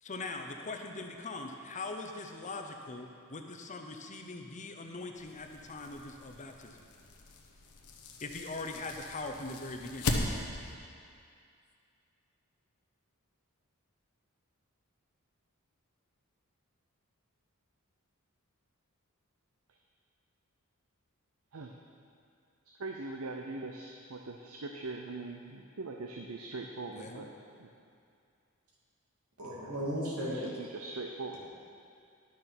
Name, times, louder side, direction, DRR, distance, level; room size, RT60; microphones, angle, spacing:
voice 1, 0.0-6.8 8.2-10.1 27.0-27.3, left 3 dB, 35° left, 4 dB, 0.7 m, -41 dB
sound 1, 5.2-10.8, left 2 dB, 90° left, 1.1 m, -39 dB
voice 2, 22.7-27.3 27.6-27.7 30.3-31.4, right 3 dB, 70° right, 2 dB, 0.6 m, -41 dB
voice 3, 29.4-30.4, equal, 90° right, -6 dB, 2.8 m, -35 dB
11.5 x 6.9 x 5.9 m, 2.4 s
head